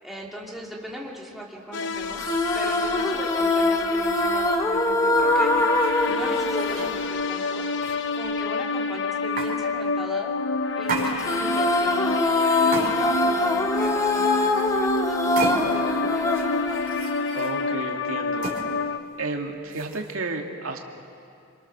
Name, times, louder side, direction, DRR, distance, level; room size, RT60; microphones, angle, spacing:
voice 1, 0.0-5.5 6.1-7.7 8.1-10.4 10.8-12.2 12.5-16.2, equal, ahead, -3 dB, 2.9 m, -39 dB
sound 1, 1.7-19.0, left 3 dB, 60° left, 0.9 m, -28 dB
sound 2, 2.2-7.7 11.2-17.6, left 2 dB, 15° left, 1.2 m, -24 dB
sound 3, 4.5-4.6 5.4-7.0 7.8-8.4 9.4-9.5 10.8-11.6 12.7-13.3 13.7-14.8 15.4-15.9 16.3-17.5 18.4-18.6 19.7-20.1, right 3 dB, 45° right, 4.0 m, -34 dB
voice 2, 17.3-18.5 19.2-20.8, right 3 dB, 80° right, 2 dB, 2.2 m, -32 dB
27.5 x 26.5 x 6.8 m, 2.5 s
head